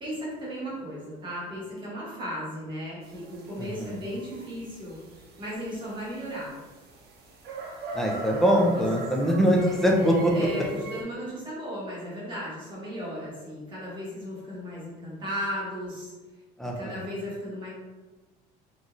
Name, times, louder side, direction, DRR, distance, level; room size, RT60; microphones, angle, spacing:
voice 1, 0.0-5.0 5.4-6.5 8.7-8.8 10.3-16.1 16.7-17.7, equal, 25° right, -7 dB, 1.2 m, -35 dB
sound 1, 3.0-11.0, right 2 dB, 60° right, 0.8 m, -40 dB
voice 2, 3.6-4.0 7.9-10.3 16.6-17.0, equal, ahead, 0 dB, 0.4 m, -23 dB
3.9 x 3.0 x 2.5 m, 1.3 s
cardioid pair, 160°, 19 cm